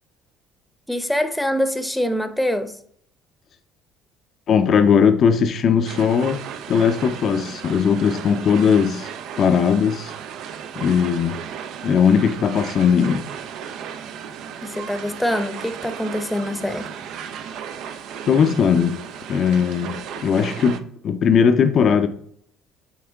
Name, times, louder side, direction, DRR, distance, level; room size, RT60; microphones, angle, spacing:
voice 1, 0.9-2.8 14.6-16.9, equal, 5° left, 0.8 m, -24 dB
voice 2, 4.5-6.4 6.7-9.1 9.4-10.1 10.8-11.4 11.8-13.2 18.2-19.0 19.3-22.1, left 7 dB, 55° left, 0.6 m, -18 dB
sound 1, 5.8-20.8, right 8 dB, 70° right, 0.5 m, -35 dB
8.8 x 3.5 x 3.4 m
supercardioid pair, 80°, 0 cm